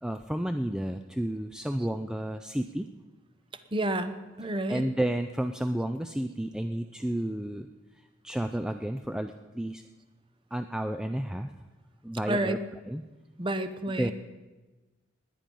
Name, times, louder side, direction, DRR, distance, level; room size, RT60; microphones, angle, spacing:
voice 1, 0.0-2.9 4.7-7.7 8.2-9.8 10.5-11.5 12.0-12.6 12.9-13.0 14.0-14.1, right 1 dB, 5° right, 7 dB, 0.3 m, -31 dB
voice 2, 3.7-4.9 12.3-12.6 13.4-14.1, right 1 dB, 25° right, 11 dB, 0.7 m, -30 dB
20.5 x 9.1 x 5.4 m, 1.2 s
head